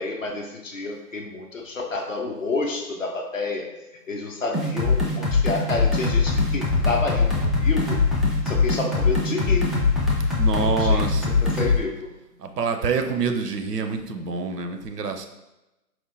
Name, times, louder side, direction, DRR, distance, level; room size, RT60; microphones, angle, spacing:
voice 1, 0.0-3.7 4.1-8.0 8.5-9.7 10.5-11.0 11.4-12.1, left 3 dB, 55° left, 2 dB, 0.5 m, -29 dB
sound 1, 4.5-11.8, left 4 dB, ahead, 0.3 m, -21 dB
voice 2, 10.4-11.4 12.4-15.3, right 5 dB, 70° right, 6 dB, 0.5 m, -26 dB
4.3 x 2.1 x 2.6 m, 0.98 s
figure-of-eight pair, 160°, 49 cm